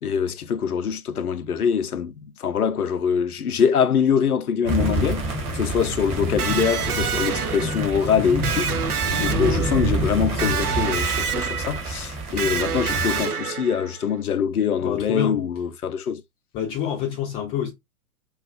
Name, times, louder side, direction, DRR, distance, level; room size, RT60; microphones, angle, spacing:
voice 1, 0.0-5.2 5.5-8.9 9.2-16.2, left 7 dB, 85° left, 0.5 m, -24 dB
sound 1, 4.6-13.3, right 1 dB, 25° right, 1.2 m, -27 dB
Electric guitar, 6.4-14.1, right 7 dB, 90° right, 0.5 m, -28 dB
voice 2, 14.8-15.4 16.5-17.7, left 9 dB, 15° left, 0.5 m, -27 dB
2.3 x 2.3 x 3.8 m
figure-of-eight pair, 105°, 43 cm